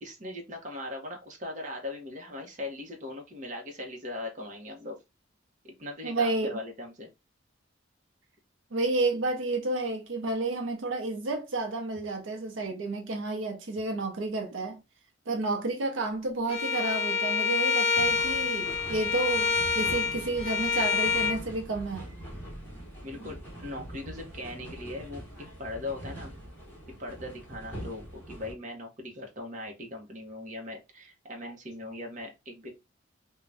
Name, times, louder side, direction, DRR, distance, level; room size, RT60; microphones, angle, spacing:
voice 1, 0.0-5.0 5.6-7.1 23.0-25.2 25.6-26.3 27.0-32.7, left 2 dB, 40° right, 0.8 m, -39 dB
voice 2, 6.0-6.5 8.7-14.8 15.3-22.1, right 2 dB, 85° right, 0.7 m, -31 dB
Bowed string instrument, 16.5-21.4, left 5 dB, 30° left, 0.7 m, -27 dB
sound 1, 17.9-28.5, right 1 dB, 10° left, 1.1 m, -43 dB
2.6 x 2.2 x 3.2 m
head